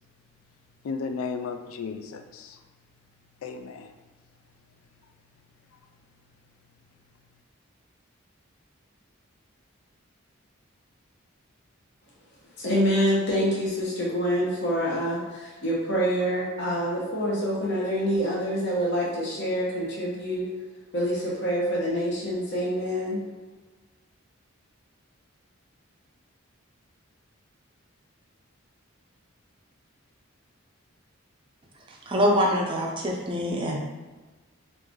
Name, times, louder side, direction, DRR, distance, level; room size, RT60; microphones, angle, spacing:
voice 1, 0.8-2.6 3.4-3.9 5.7-5.8, left 5 dB, 75° left, 7 dB, 0.3 m, -34 dB
voice 2, 12.6-20.4 20.9-23.2, equal, 55° left, -5 dB, 1.0 m, -26 dB
voice 3, 31.9-33.8, equal, 25° right, -1 dB, 0.5 m, -25 dB
3.3 x 2.6 x 3.5 m, 1.3 s
head